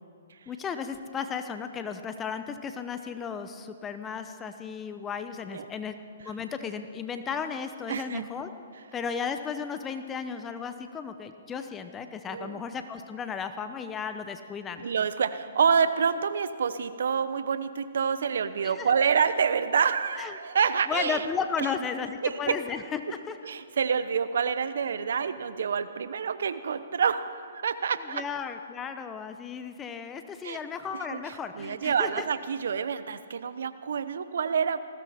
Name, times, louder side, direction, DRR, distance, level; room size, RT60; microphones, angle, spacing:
voice 1, 0.5-8.5 8.9-14.8 18.6-18.9 20.2-20.4 20.9-23.4 28.1-32.3, left 6 dB, 15° left, 9 dB, 0.8 m, -34 dB
voice 2, 7.9-8.3 12.3-12.6 14.8-21.3 21.6-21.7 22.2-22.6 23.4-28.2 30.4-30.6 30.9-31.2 31.6-34.8, right 6 dB, 70° right, 13 dB, 0.9 m, -27 dB
20.0 x 16.0 x 4.3 m, 2.5 s
hypercardioid pair, 140°, 0 cm